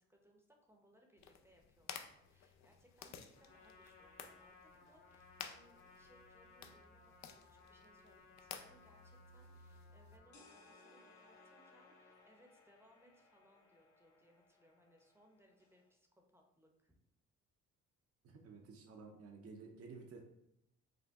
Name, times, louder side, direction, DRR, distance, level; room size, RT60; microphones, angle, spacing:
voice 1, 0.0-17.0, equal, 10° right, 1 dB, 0.7 m, -69 dB
sound 1, 1.2-10.2, left 7 dB, 65° left, 0.5 m, -54 dB
Trumpet, 3.3-12.3, left 4 dB, 45° left, 1.5 m, -63 dB
sound 2, 10.3-15.9, left 3 dB, 90° left, 1.1 m, -67 dB
voice 2, 18.2-20.2, right 4 dB, 50° right, 2 dB, 0.7 m, -53 dB
5.1 x 2.2 x 3.5 m, 0.79 s
cardioid pair, 90°, 30 cm